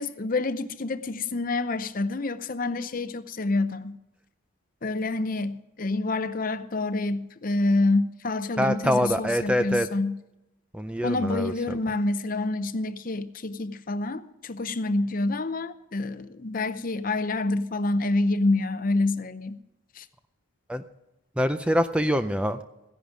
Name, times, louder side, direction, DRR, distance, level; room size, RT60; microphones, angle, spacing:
voice 1, 0.0-4.0 4.8-10.2 11.0-19.6 19.9-20.1, left 2 dB, 40° left, 12 dB, 0.6 m, -27 dB
voice 2, 8.6-9.9 10.7-11.8 20.7-20.8 21.4-22.6, equal, 5° right, 9 dB, 0.4 m, -25 dB
15.5 x 10.5 x 5.0 m, 0.93 s
head